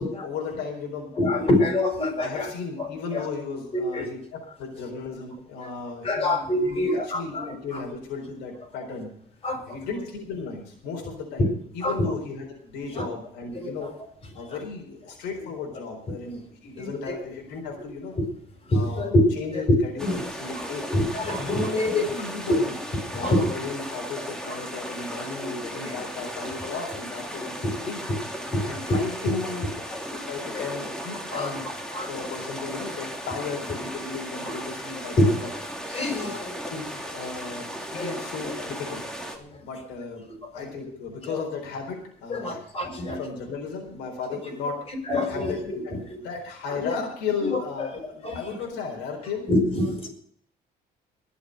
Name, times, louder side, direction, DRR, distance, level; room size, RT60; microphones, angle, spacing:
voice 1, 0.0-1.6 2.2-7.4 7.6-9.1 9.7-13.9 14.3-18.2 18.7-20.9 21.5-22.8 23.1-28.0 28.6-31.6 32.1-35.5 36.2-39.0 39.6-40.3 40.5-44.8 45.3-49.5, left 4 dB, 90° left, 1 dB, 4.1 m, -35 dB
voice 2, 1.1-2.5 2.8-3.3 3.7-4.1 6.0-7.8 9.4-9.8 11.8-12.1 12.9-13.1 13.5-13.9 14.5-14.6 16.8-17.1 18.7-19.2 19.5-19.6 20.0-20.2 20.5-20.7 20.9-22.0 23.1-23.6 24.5-24.6 25.4-25.6 25.8-25.9 26.4-26.5 27.6-27.8 28.5-29.0 30.5-30.6 31.3-31.5 31.9-32.3 34.4-34.5 35.2-35.3 35.9-36.5 38.0-38.2 39.5-39.6 40.4-40.7 41.2-41.4 42.3-43.2 45.1-46.0 46.8-46.9 47.5-47.9 48.2-48.4 49.5-50.1, left 1 dB, 35° left, 3 dB, 6.7 m, -26 dB
sound 1, 20.0-39.4, equal, 5° left, 2.6 m, -36 dB
21.0 x 7.2 x 6.5 m, 0.62 s
cardioid pair, 110°, 17 cm